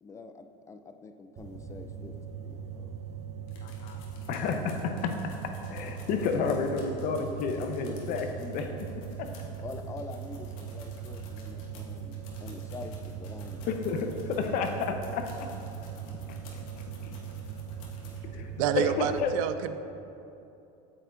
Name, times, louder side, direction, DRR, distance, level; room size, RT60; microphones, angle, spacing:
voice 1, 0.0-2.9 9.6-13.7, left 4 dB, 15° left, 7 dB, 0.4 m, -45 dB
sound 1, 1.4-19.2, right 7 dB, 40° right, 0.8 m, -40 dB
sound 2, 3.5-18.3 18.8-18.9 19.1-19.2, left 5 dB, 75° left, 1.4 m, -55 dB
voice 2, 3.6-4.0 4.3-9.0 13.7-15.5 16.3-16.6 17.0-17.2 18.3-18.5 18.8-19.3, left 5 dB, 50° left, 5 dB, 0.8 m, -31 dB
voice 3, 18.6-19.8, right 9 dB, 70° right, 11 dB, 0.4 m, -28 dB
8.7 x 6.7 x 2.5 m, 2.8 s
supercardioid pair, 110°, 18 cm